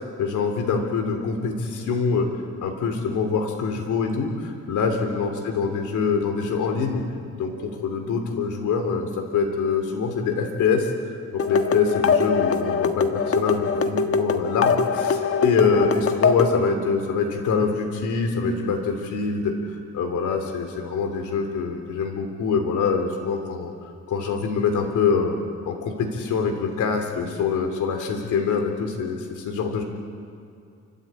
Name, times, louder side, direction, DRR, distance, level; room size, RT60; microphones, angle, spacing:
voice 1, 0.2-2.3 2.6-7.0 7.4-10.9 11.3-23.7 24.1-25.3 25.6-29.8, left 5 dB, 80° left, 3 dB, 3.1 m, -24 dB
sound 1, 11.4-16.6, left 5 dB, 50° left, 1.6 m, -23 dB
29.5 x 13.0 x 8.8 m, 2.4 s
cardioid pair, 90°, 30 cm